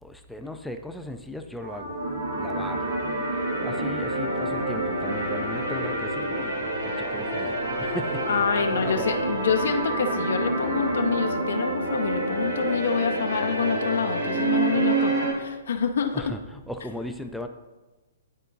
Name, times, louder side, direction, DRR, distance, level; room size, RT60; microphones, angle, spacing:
voice 1, 0.0-1.9 2.3-3.1 3.6-8.4 8.7-9.2 16.1-17.5, left 1 dB, ahead, 5 dB, 0.4 m, -37 dB
sound 1, 1.6-15.3, right 2 dB, 75° right, 1.6 m, -27 dB
voice 2, 8.3-16.3, left 6 dB, 75° left, 5 dB, 0.5 m, -27 dB
11.0 x 3.7 x 2.6 m, 1.2 s
hypercardioid pair, 135°, 0 cm